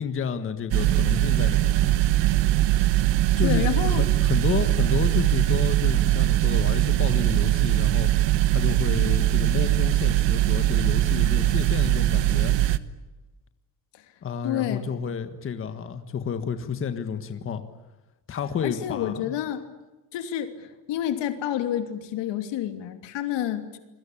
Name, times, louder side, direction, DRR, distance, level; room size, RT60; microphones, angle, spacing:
voice 1, 0.0-1.9 3.4-8.1 8.5-12.5 14.2-17.6 18.3-19.3, left 7 dB, 30° left, 8 dB, 1.6 m, -30 dB
sound 1, 0.7-12.8, right 14 dB, 85° right, 1.4 m, -21 dB
voice 2, 3.4-4.0 13.9-14.0 14.4-14.8 18.3-18.4 18.6-19.6 20.1-23.8, left 11 dB, 90° left, 7 dB, 3.0 m, -29 dB
29.5 x 22.0 x 8.6 m, 1.1 s
cardioid pair, 180°, 42 cm